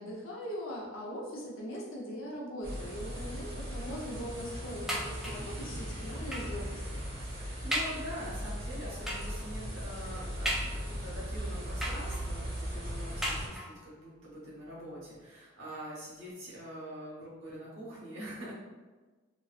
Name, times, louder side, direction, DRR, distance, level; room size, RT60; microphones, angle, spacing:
voice 1, 0.0-7.1, equal, 75° left, -3 dB, 0.7 m, -41 dB
sound 1, 2.6-13.5, equal, 45° right, 0.7 m, -38 dB
sound 2, 4.9-5.6 6.3-6.6 7.2-7.3 7.7-8.1 9.1-9.4 10.5-11.1 11.8-12.4 13.2-13.9 14.7-14.8 15.1-15.2, equal, ahead, 0.3 m, -36 dB
voice 2, 7.3-18.5, equal, 70° right, -7 dB, 1.2 m, -44 dB
3.0 x 2.6 x 2.4 m, 1.3 s
head